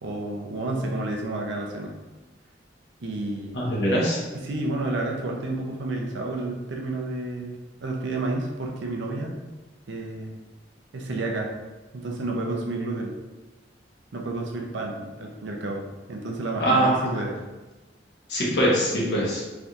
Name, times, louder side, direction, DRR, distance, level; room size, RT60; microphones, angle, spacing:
voice 1, 0.0-1.9 3.0-3.6 4.3-9.3 9.9-10.4 10.9-11.5 11.9-13.2 14.1-17.4, right 2 dB, 80° right, 0 dB, 0.5 m, -30 dB
voice 2, 3.5-4.2 16.6-17.1 18.3-19.4, right 1 dB, 65° left, -5 dB, 1.0 m, -22 dB
3.2 x 2.8 x 2.4 m, 1.2 s
head